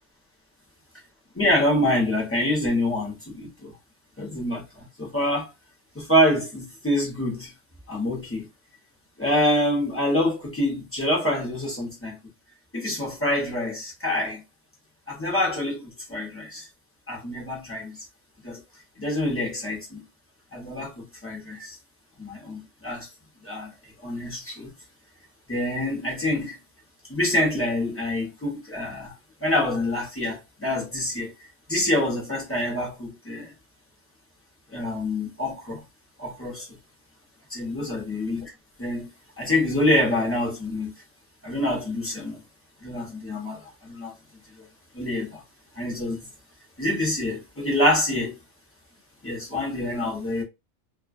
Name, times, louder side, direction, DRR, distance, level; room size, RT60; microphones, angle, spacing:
voice 1, 1.3-3.7 4.2-5.5 5.9-7.5 7.9-8.5 9.2-12.2 12.7-14.4 15.1-15.8 16.1-16.7 17.1-18.0 18.4-18.6 19.0-20.0 20.5-21.8 22.2-23.1 23.4-23.7 24.0-24.7 25.5-26.6 27.1-29.1 29.4-33.5 34.7-35.8 36.2-36.7 37.5-38.5 38.8-39.1 39.4-40.9 41.4-42.4 42.8-44.1 44.9-45.4 45.7-46.3 46.8-48.4 49.2-50.4, left 1 dB, 15° left, 0.6 m, -26 dB
2.3 x 2.3 x 2.5 m
omnidirectional pair, 1.4 m